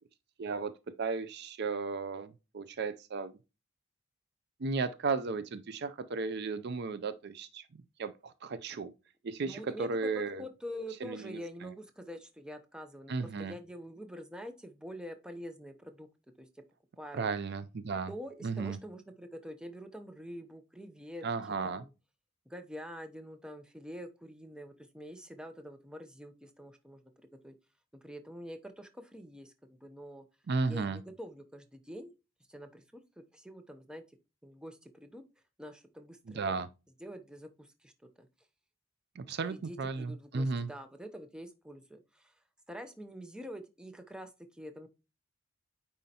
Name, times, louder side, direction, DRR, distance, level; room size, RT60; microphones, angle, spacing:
voice 1, 0.4-0.7 1.0-3.3 4.6-8.9 9.2-10.4 11.0-11.7 13.1-13.5 17.1-18.1 18.4-18.8 21.2-21.8 30.5-31.0 36.3-36.7 39.2-40.7, right 4 dB, 50° right, 0.4 m, -35 dB
voice 2, 9.4-16.1 16.4-16.5 17.0-17.3 18.1-21.2 21.6-21.9 22.5-27.0 27.4-27.5 28.0-30.2 30.7-32.1 32.5-32.8 33.2-34.0 34.4-35.2 35.6-36.6 37.0-37.9 38.2-38.3 39.4-42.4 42.7-44.9, equal, 5° right, 0.6 m, -46 dB
9.1 x 4.3 x 2.8 m
head